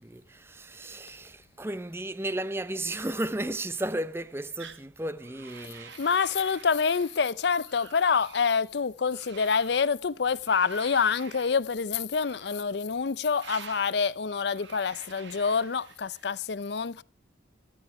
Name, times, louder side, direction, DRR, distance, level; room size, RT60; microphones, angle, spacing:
voice 1, 0.0-6.2, right 1 dB, 10° right, 0.5 m, -34 dB
sound 1, 4.6-4.8 5.2-7.3 7.6-8.4 9.1-9.9 10.5-11.6 12.2-12.8 13.3-13.9 14.5-16.3, right 6 dB, 70° right, 1.4 m, -48 dB
voice 2, 6.0-17.0, left 5 dB, 60° left, 0.5 m, -27 dB
13.0 x 12.0 x 4.6 m
head